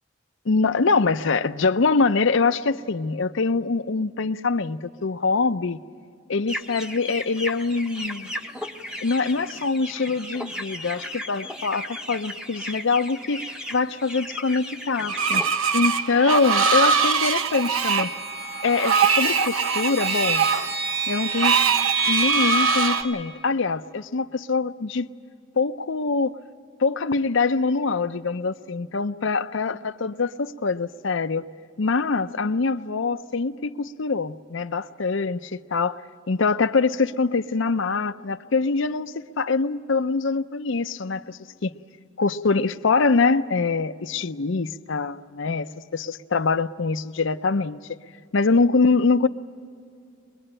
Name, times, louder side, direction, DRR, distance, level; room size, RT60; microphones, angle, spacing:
voice 1, 0.5-5.8 6.3-8.3 9.0-13.4 13.7-15.4 15.7-18.1 18.6-20.5 21.1-21.6 22.1-25.1 25.6-26.3 26.8-31.5 31.8-36.0 36.3-41.7 42.2-47.8 48.3-49.3, left 4 dB, 65° left, 11 dB, 0.6 m, -24 dB
sound 1, 6.5-15.6, left 1 dB, 5° right, 0.8 m, -36 dB
Screech, 15.1-23.0, right 5 dB, 90° right, 1.1 m, -23 dB
sound 2, 16.3-23.0, right 4 dB, 70° right, 4.9 m, -28 dB
23.0 x 22.0 x 8.9 m, 2.3 s
head